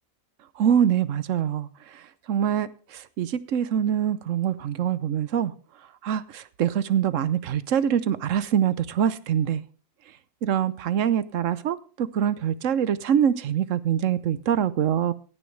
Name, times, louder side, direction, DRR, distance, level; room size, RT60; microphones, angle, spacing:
voice 1, 0.6-5.5 6.0-9.6 10.4-15.1, right 9 dB, 70° right, 16 dB, 1.1 m, -24 dB
16.5 x 10.0 x 3.3 m, 0.38 s
omnidirectional pair, 1.4 m